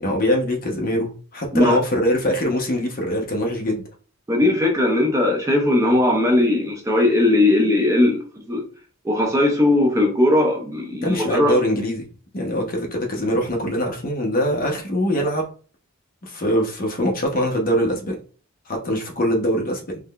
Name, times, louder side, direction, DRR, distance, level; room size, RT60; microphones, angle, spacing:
voice 1, 0.0-3.8 10.9-12.1 12.3-15.5 16.2-18.2 18.7-20.0, equal, 45° left, 0.7 m, -23 dB
voice 2, 4.3-8.7 9.0-11.5, left 1 dB, 15° right, 0.5 m, -18 dB
3.5 x 2.1 x 2.3 m
head